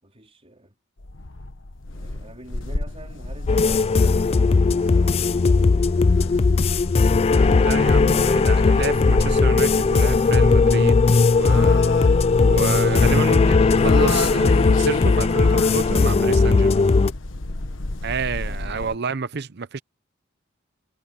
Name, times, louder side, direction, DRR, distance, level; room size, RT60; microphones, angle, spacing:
voice 1, 0.0-0.7 1.9-6.6 18.2-19.1, right 1 dB, 30° right, 4.1 m, -47 dB
sound 1, 1.0-19.0, left 1 dB, 80° left, 1.3 m, -30 dB
sound 2, 3.5-17.1, left 4 dB, 30° left, 0.3 m, -18 dB
voice 2, 7.3-11.8 12.4-16.8 18.0-19.8, right 4 dB, 55° right, 0.7 m, -30 dB
head